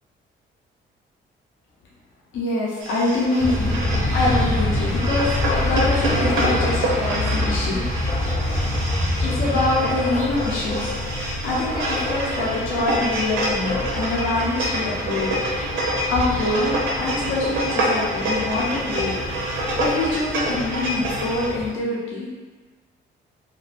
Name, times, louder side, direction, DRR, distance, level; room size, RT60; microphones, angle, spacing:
voice 1, 2.3-8.2 9.2-10.9 11.4-15.3 16.1-19.1 19.8-22.3, left 2 dB, 80° left, -5 dB, 0.7 m, -25 dB
sound 1, 2.8-21.5, right 1 dB, 80° right, 0.6 m, -27 dB
sound 2, 3.4-21.7, left 1 dB, 35° left, 0.7 m, -27 dB
2.5 x 2.2 x 3.2 m, 1.3 s
cardioid pair, 90°, 20 cm